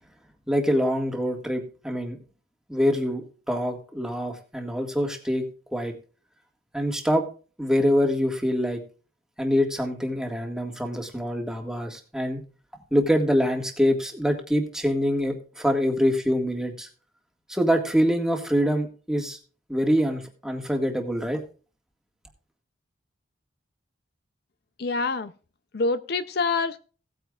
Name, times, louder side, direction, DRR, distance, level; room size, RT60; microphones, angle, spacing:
voice 1, 0.5-2.2 2.7-5.5 5.7-6.0 6.7-7.3 7.6-8.8 9.4-12.4 12.9-16.9 17.5-19.4 19.7-21.4, equal, 5° right, 3 dB, 1.7 m, -25 dB
voice 2, 24.8-25.3 25.7-26.8, left 3 dB, 55° left, 12 dB, 0.5 m, -26 dB
17.5 x 9.1 x 2.4 m, 0.37 s
head